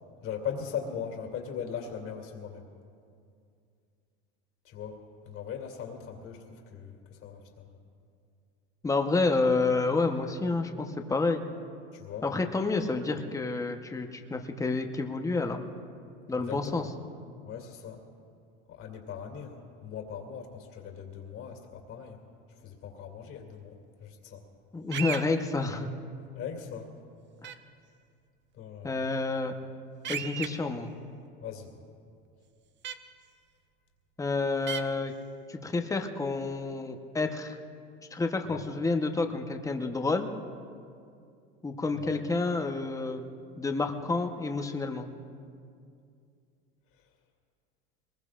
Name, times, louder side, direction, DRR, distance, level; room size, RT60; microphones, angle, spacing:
voice 1, 0.2-2.7 4.6-5.0 5.3-7.8 11.9-12.3 16.3-16.9 17.4-18.0 18.7-22.2 22.6-24.4 25.5-25.8 26.4-26.9 28.5-29.0 31.4-31.7 38.5-38.6 42.0-42.2, left 7 dB, 45° left, 2 dB, 2.7 m, -40 dB
voice 2, 8.8-11.4 12.2-15.6 16.3-16.9 24.7-25.9 27.4-27.5 28.8-29.5 30.1-30.9 34.2-35.1 35.5-37.5 38.1-40.3 41.6-43.2 43.6-45.1, left 3 dB, 10° left, 5 dB, 1.0 m, -29 dB
sound 1, 24.9-25.2 27.4-27.5 30.0-30.5 32.8-32.9 34.7-34.8, right 9 dB, 35° right, 0.8 m, -34 dB
22.5 x 20.5 x 2.5 m, 2.4 s
supercardioid pair, 110°, 30 cm